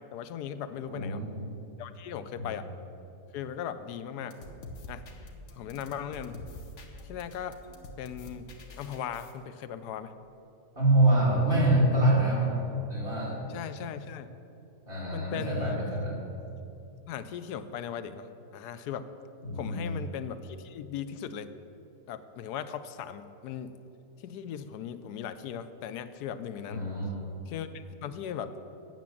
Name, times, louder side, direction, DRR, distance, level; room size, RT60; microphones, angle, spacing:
voice 1, 0.0-1.2 1.8-2.7 3.3-4.4 4.9-5.0 5.5-6.4 7.0-7.6 8.0-8.5 8.8-10.1 13.5-14.3 15.1-15.8 17.1-19.1 19.5-21.5 22.1-23.8 24.2-26.9 27.5-28.5, left 8 dB, 85° left, 12 dB, 1.1 m, -38 dB
voice 2, 0.9-1.4 2.3-2.4 10.7-12.5 12.9-13.4 14.8-16.2 19.4-19.9 26.7-27.2, right 1 dB, 35° right, -5 dB, 3.0 m, -25 dB
sound 1, 4.2-9.3, left 1 dB, 55° left, 1.2 m, -46 dB
9.3 x 7.6 x 7.1 m, 2.8 s
omnidirectional pair, 1.7 m